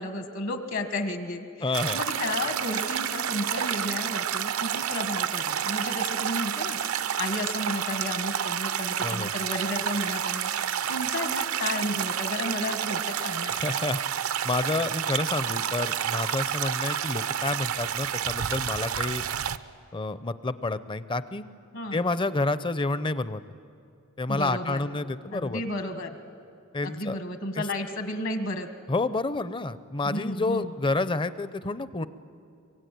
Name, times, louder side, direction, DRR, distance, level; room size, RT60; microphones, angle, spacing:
voice 1, 0.0-13.6 21.7-22.0 24.3-24.8 25.3-26.1 26.8-28.7 30.0-30.7, left 1 dB, 65° left, 7 dB, 1.7 m, -33 dB
voice 2, 1.6-2.0 9.0-9.3 13.5-14.0 14.4-19.2 19.9-21.4 21.9-23.4 24.2-25.6 26.7-27.2 27.5-27.6 28.9-32.1, left 2 dB, 25° left, 14 dB, 0.6 m, -29 dB
sound 1, 1.7-19.6, right 9 dB, 80° right, 0.7 m, -29 dB
23.5 x 23.0 x 9.3 m, 2.5 s
head